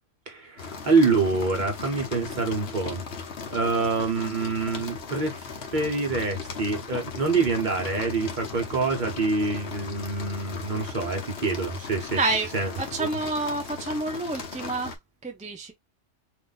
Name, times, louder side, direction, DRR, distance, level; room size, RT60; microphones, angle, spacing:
voice 1, 0.3-3.0 3.5-5.5 5.7-12.2 12.5-12.7 13.0-13.1, right 3 dB, 40° right, 1.0 m, -26 dB
sound 1, 0.6-15.0, left 5 dB, 60° left, 0.9 m, -37 dB
voice 2, 12.1-12.5 12.8-15.7, right 2 dB, 10° right, 0.3 m, -29 dB
2.6 x 2.6 x 3.9 m
omnidirectional pair, 1.3 m